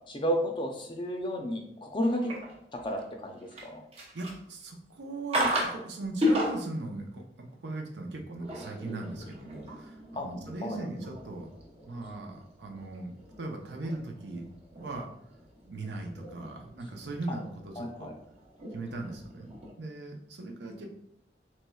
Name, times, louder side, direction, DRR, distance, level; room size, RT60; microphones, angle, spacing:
voice 1, 0.1-2.3 2.7-3.8 10.2-10.3 10.6-10.8 17.3-17.4 17.8-18.1, equal, 30° left, 3 dB, 0.5 m, -32 dB
sound 1, 2.0-3.0 3.4-4.6 5.3-5.8 6.2-6.8 8.2-19.7, equal, 35° right, 0.7 m, -36 dB
voice 2, 4.1-11.5 11.8-13.1 13.4-14.5 14.7-15.1 15.6-18.1 18.7-20.9, right 2 dB, 80° right, 2 dB, 0.6 m, -39 dB
4.3 x 3.0 x 2.3 m, 0.73 s
head